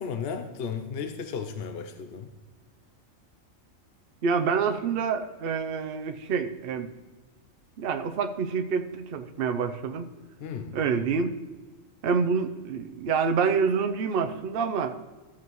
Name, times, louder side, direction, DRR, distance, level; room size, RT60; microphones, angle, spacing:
voice 1, 0.0-2.3 10.4-10.7, left 6 dB, 55° left, 6 dB, 0.8 m, -34 dB
voice 2, 4.2-6.9 7.8-10.1 10.7-11.4 12.0-14.9, right 5 dB, 55° right, 6 dB, 0.8 m, -27 dB
14.5 x 8.6 x 3.1 m, 1.3 s
omnidirectional pair, 1.4 m